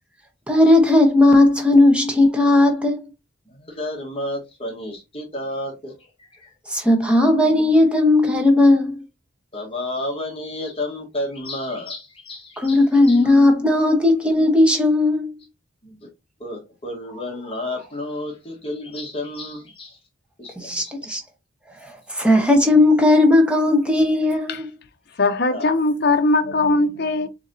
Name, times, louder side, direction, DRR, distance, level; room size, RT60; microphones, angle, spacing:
voice 1, 0.5-3.0 6.7-9.0 12.6-15.3 20.6-21.2 21.8-24.7, left 2 dB, 5° right, 0.9 m, -16 dB
voice 2, 3.5-5.9 6.2-6.5 9.5-13.3 15.8-16.1 16.4-20.0 20.4-20.9 25.5-25.6, left 1 dB, 25° left, 1.3 m, -31 dB
voice 3, 25.2-27.3, left 2 dB, 50° left, 0.6 m, -20 dB
7.0 x 2.9 x 2.6 m
head